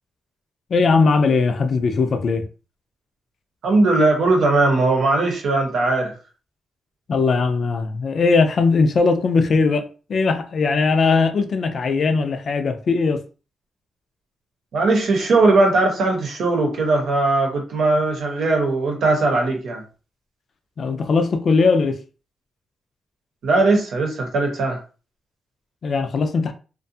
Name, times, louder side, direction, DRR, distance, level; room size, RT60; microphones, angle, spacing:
voice 1, 0.7-2.5 7.1-13.2 20.8-22.0 25.8-26.5, left 4 dB, 55° left, 0.4 m, -19 dB
voice 2, 3.6-6.1 14.7-19.8 23.4-24.8, right 2 dB, 70° right, 0.8 m, -19 dB
2.5 x 2.2 x 2.7 m
cardioid pair, 110°, 0 cm